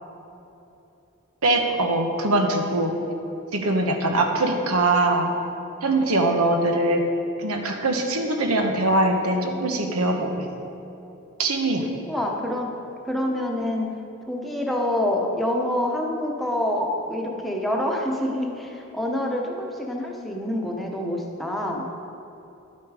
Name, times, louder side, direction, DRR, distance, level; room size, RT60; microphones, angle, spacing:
voice 1, 1.4-3.0 3.5-5.3 5.8-7.0 7.4-10.4 11.4-11.9, right 2 dB, 90° right, 4 dB, 1.2 m, -22 dB
voice 2, 12.1-12.7 13.0-13.9 14.3-21.9, left 1 dB, ahead, -1 dB, 1.0 m, -26 dB
10.5 x 8.5 x 4.9 m, 2.8 s
head